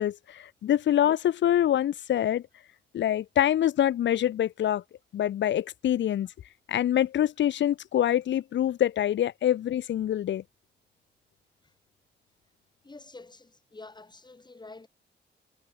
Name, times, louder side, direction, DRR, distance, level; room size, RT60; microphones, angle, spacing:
voice 1, 0.0-2.4 2.9-4.8 5.1-6.3 6.7-10.4, left 11 dB, 70° left, 0.6 m, -25 dB
voice 2, 12.8-14.9, left 3 dB, 20° left, 7.6 m, -47 dB
cardioid pair, 115°, 20 cm